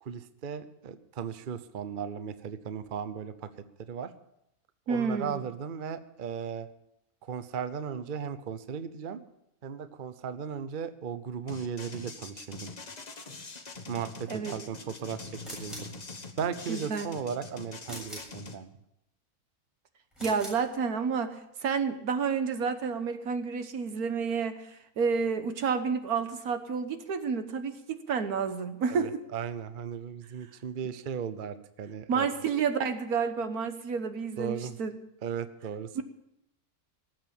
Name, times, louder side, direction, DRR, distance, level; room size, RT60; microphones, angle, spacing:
voice 1, 0.0-3.5 3.9-4.1 4.9-6.7 7.2-9.2 9.6-12.7 13.9-15.2 15.5-15.9 16.4-18.7 28.9-32.3 34.4-34.8 35.2-36.0, right 7 dB, 45° right, 12 dB, 0.8 m, -36 dB
voice 2, 4.9-5.4 14.3-14.5 16.7-17.1 20.2-21.4 21.6-29.2 32.1-35.0 35.9-36.0, right 5 dB, 80° right, 9 dB, 1.6 m, -30 dB
sound 1, 11.5-18.6, left 3 dB, 30° left, 1.2 m, -44 dB
sound 2, 15.4-16.0 17.8-18.4 20.1-20.7, equal, ahead, 7.3 m, -42 dB
18.5 x 7.7 x 7.0 m, 0.81 s
omnidirectional pair, 1.6 m